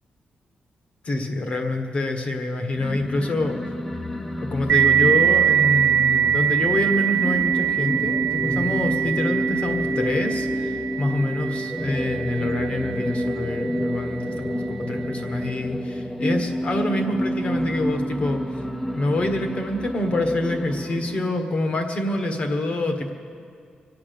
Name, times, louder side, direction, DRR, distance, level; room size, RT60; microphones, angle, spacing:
voice 1, 1.0-3.6 4.4-18.4 18.9-23.1, left 1 dB, 45° left, 5 dB, 1.5 m, -26 dB
sound 1, 2.7-21.3, equal, 10° left, 0.6 m, -29 dB
sound 2, 4.7-13.9, right 10 dB, 90° right, 0.8 m, -23 dB
24.5 x 8.5 x 6.9 m, 2.3 s
wide cardioid pair, 155°, 3 cm